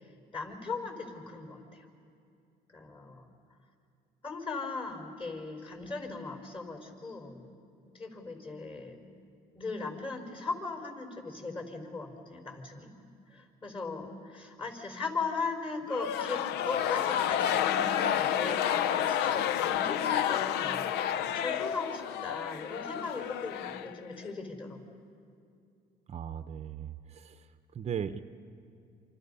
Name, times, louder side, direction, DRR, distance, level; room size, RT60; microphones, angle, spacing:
voice 1, 0.3-1.8 2.7-3.3 4.2-7.4 7.8-9.0 9.5-12.9 13.3-24.8, left 4 dB, 30° left, 4 dB, 4.7 m, -38 dB
sound 1, 15.9-24.3, left 9 dB, 85° left, 0.6 m, -30 dB
voice 2, 26.1-27.4 27.7-28.2, right 8 dB, 40° right, 10 dB, 0.7 m, -37 dB
28.0 x 27.0 x 5.6 m, 2.5 s
cardioid pair, 110°, 17 cm